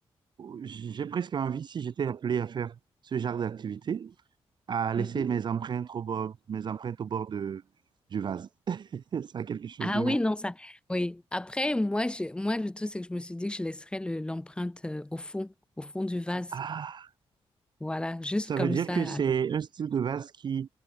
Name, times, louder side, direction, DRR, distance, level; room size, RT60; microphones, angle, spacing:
voice 1, 0.4-2.8 3.0-4.1 4.7-7.6 8.1-10.2 16.5-17.1 18.5-20.7, right 7 dB, 45° right, 0.5 m, -31 dB
voice 2, 9.8-16.5 17.8-19.2, left 1 dB, 10° left, 0.9 m, -31 dB
cardioid pair, 115°, 10 cm